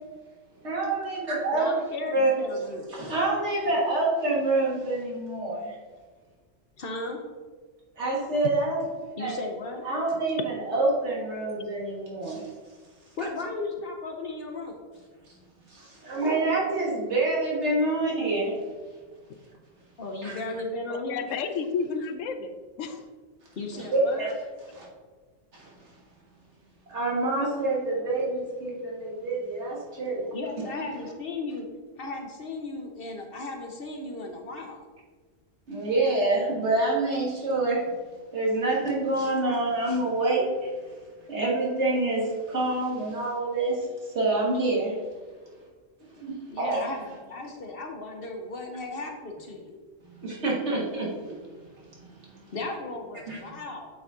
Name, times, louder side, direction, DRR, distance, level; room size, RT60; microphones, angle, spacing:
voice 1, 0.6-1.7 2.1-2.3 2.9-5.8 8.0-8.9 9.2-9.3 9.9-12.4 13.2-13.3 15.7-18.6 20.2-20.4 23.7-24.3 24.7-24.9 25.5-25.7 26.9-30.3 35.7-37.8 38.3-40.4 41.3-43.9 44.1-44.9 46.1-46.8 50.2-51.3 52.0-52.4 53.3-53.6, right 2 dB, 60° right, -4 dB, 1.9 m, -27 dB
voice 2, 1.5-2.9 6.8-7.2 9.2-9.9 13.2-14.8 20.0-21.3 23.6-24.3 30.3-31.7 32.0-34.8 46.5-49.8 52.5-53.9, left 2 dB, 55° left, 3 dB, 1.0 m, -35 dB
voice 3, 20.9-23.0, left 5 dB, 80° left, 8 dB, 1.0 m, -31 dB
8.2 x 4.1 x 3.7 m, 1.4 s
omnidirectional pair, 1.3 m